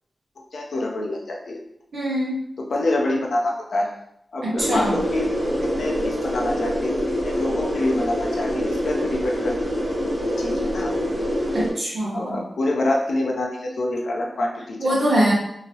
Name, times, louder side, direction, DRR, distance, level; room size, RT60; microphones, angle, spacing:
voice 1, 0.5-1.6 2.6-3.9 4.3-9.6 10.2-10.9 12.1-15.0, left 1 dB, 75° left, -1 dB, 0.6 m, -26 dB
voice 2, 1.9-2.4 4.4-5.0 11.5-12.4 14.8-15.3, equal, 80° right, -7 dB, 0.9 m, -23 dB
sound 1, 4.6-11.7, equal, 25° right, 1.0 m, -25 dB
2.8 x 2.8 x 2.8 m, 0.74 s
wide cardioid pair, 100°, 0 cm